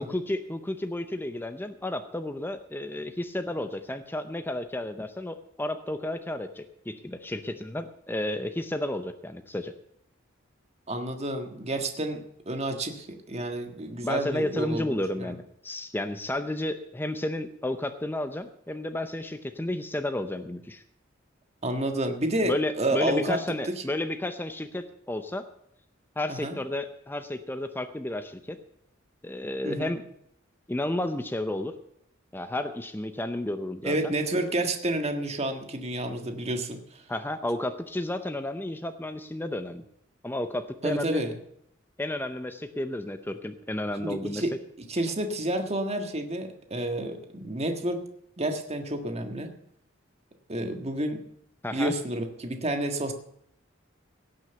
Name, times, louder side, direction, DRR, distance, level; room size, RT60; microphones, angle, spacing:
voice 1, 0.0-9.7 14.0-20.8 22.4-25.4 26.2-28.6 29.2-30.0 30.7-31.8 32.3-34.1 37.1-39.8 40.2-41.2 42.0-44.4 51.6-51.9, left 1 dB, 10° left, 9 dB, 0.6 m, -32 dB
voice 2, 10.9-15.3 21.6-23.7 26.3-26.6 29.6-29.9 33.8-37.0 40.8-41.4 44.0-44.5 44.9-48.0 48.4-49.5 50.5-51.2 51.7-53.1, right 1 dB, 35° right, 6 dB, 1.6 m, -30 dB
17.0 x 6.1 x 8.0 m, 0.73 s
head